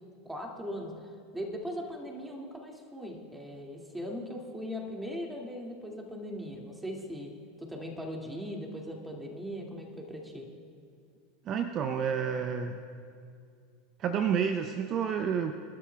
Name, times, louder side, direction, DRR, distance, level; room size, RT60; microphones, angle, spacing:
voice 1, 0.2-0.9 1.3-7.3 7.6-10.5, equal, 10° right, 0 dB, 2.3 m, -39 dB
voice 2, 11.5-12.8 14.0-15.5, right 7 dB, 40° right, 7 dB, 0.7 m, -29 dB
27.0 x 12.5 x 2.3 m, 2.3 s
figure-of-eight pair, 80°, 0 cm